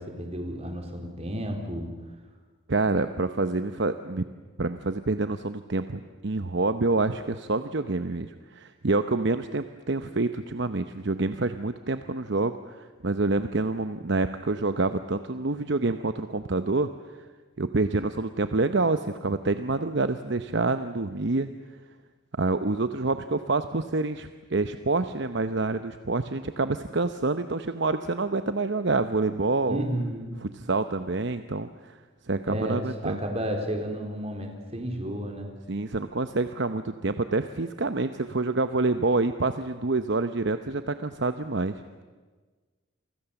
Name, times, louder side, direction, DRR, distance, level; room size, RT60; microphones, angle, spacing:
voice 1, 0.0-1.9 29.7-30.3 32.5-35.5, equal, 30° right, 3 dB, 4.0 m, -32 dB
voice 2, 2.7-4.3 4.6-16.9 17.6-21.5 22.4-29.9 30.4-32.0 32.3-33.2 35.7-42.0, right 3 dB, 55° right, 10 dB, 0.8 m, -27 dB
29.5 x 24.5 x 7.1 m, 1.4 s
head